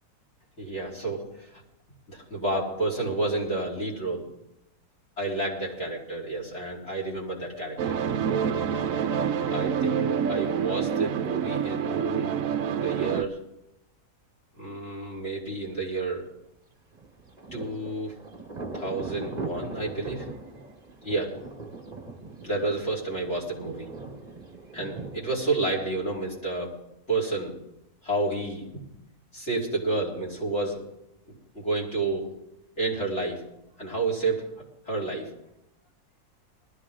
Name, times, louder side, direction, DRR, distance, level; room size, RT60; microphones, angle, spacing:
voice 1, 0.6-1.6 2.1-4.3 5.2-8.0 9.5-12.3 12.7-13.4 14.6-16.3 17.5-18.1 18.7-20.3 21.0-21.4 22.4-23.9 24.7-26.8 27.1-27.6 28.0-28.6 29.3-30.8 31.3-32.3 32.8-33.4 33.8-34.5 34.8-35.3, right 2 dB, 45° left, -4 dB, 4.4 m, -30 dB
sound 1, 7.8-13.2, right 8 dB, 65° right, 1.0 m, -27 dB
Thunder, 16.9-26.4, right 3 dB, 30° right, 1.5 m, -41 dB
20.0 x 14.0 x 3.8 m, 0.84 s
omnidirectional pair, 1.7 m